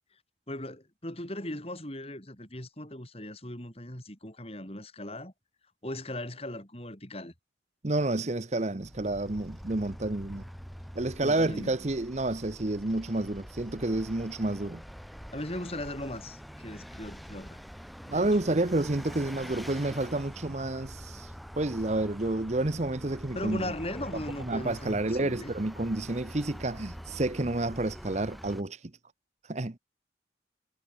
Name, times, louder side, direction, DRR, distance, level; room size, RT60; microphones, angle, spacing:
voice 1, 0.5-5.3 5.8-7.3 11.2-11.7 15.3-17.6 18.1-18.3 23.3-25.5, left 1 dB, 30° left, 6.8 m, -38 dB
voice 2, 7.8-10.4 10.9-14.8 18.1-23.7 24.4-28.8 29.5-29.8, right 2 dB, 40° right, 0.9 m, -30 dB
Vehicle, 8.8-28.6, equal, ahead, 5.7 m, -45 dB
head